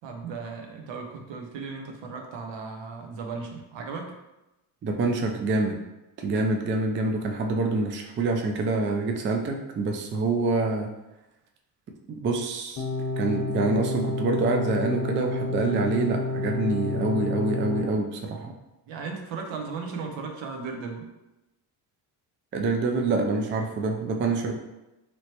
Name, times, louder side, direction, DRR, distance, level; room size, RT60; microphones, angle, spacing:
voice 1, 0.0-4.1 18.9-21.1, right 4 dB, 70° right, 2 dB, 0.8 m, -36 dB
voice 2, 4.8-5.8 6.2-10.9 12.2-12.9 13.2-18.5 22.5-24.5, right 3 dB, 25° right, 2 dB, 0.4 m, -26 dB
sound 1, 12.8-17.8, left 2 dB, 45° left, 0.9 m, -29 dB
3.1 x 2.9 x 2.9 m, 0.97 s
supercardioid pair, 85°, 47 cm